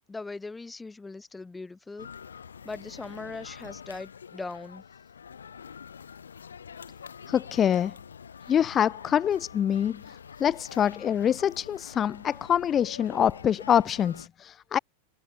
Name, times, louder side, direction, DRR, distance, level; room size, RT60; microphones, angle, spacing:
voice 1, 0.1-2.1 2.6-4.8, left 3 dB, 10° left, 1.3 m, -39 dB
sound 1, 2.0-14.3, left 7 dB, 70° left, 3.5 m, -46 dB
voice 2, 7.3-7.9 8.5-10.0 10.4-14.8, left 9 dB, 25° left, 0.5 m, -25 dB
figure-of-eight pair, 90°, 0 cm